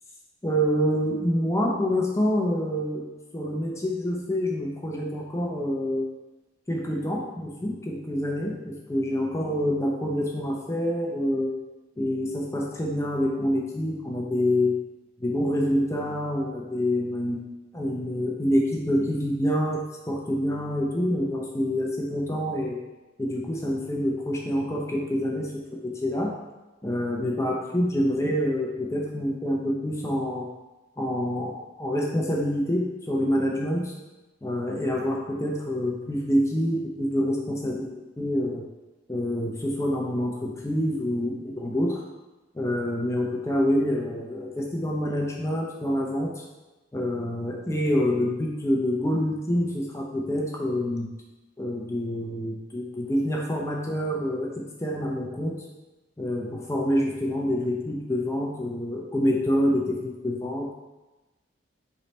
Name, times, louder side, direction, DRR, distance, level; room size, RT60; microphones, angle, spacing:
voice 1, 0.4-3.1 3.3-6.1 6.7-11.5 12.0-14.8 15.2-22.8 23.2-26.3 26.8-30.5 31.0-33.9 34.4-37.9 38.2-38.6 39.1-42.0 42.5-46.4 46.9-51.1 51.6-55.6 56.2-60.7, equal, 15° left, -1 dB, 0.5 m, -27 dB
3.8 x 3.3 x 4.1 m, 1.1 s
head